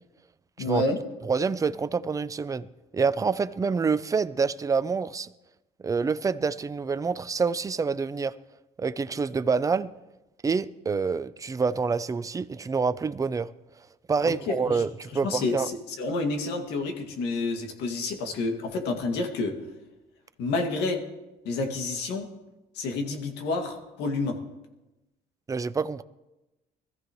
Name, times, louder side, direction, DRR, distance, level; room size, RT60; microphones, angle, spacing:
voice 1, 0.6-1.0 14.2-14.8 15.2-19.5 20.4-21.0 21.4-22.3 22.8-24.4, left 3 dB, 85° left, 2.1 m, -29 dB
voice 2, 1.2-2.7 2.9-5.3 5.8-8.3 8.8-9.9 10.4-13.5 14.1-15.7 25.5-26.0, right 5 dB, 20° right, 0.5 m, -27 dB
21.5 x 14.5 x 3.1 m
cardioid pair, 110°, 17 cm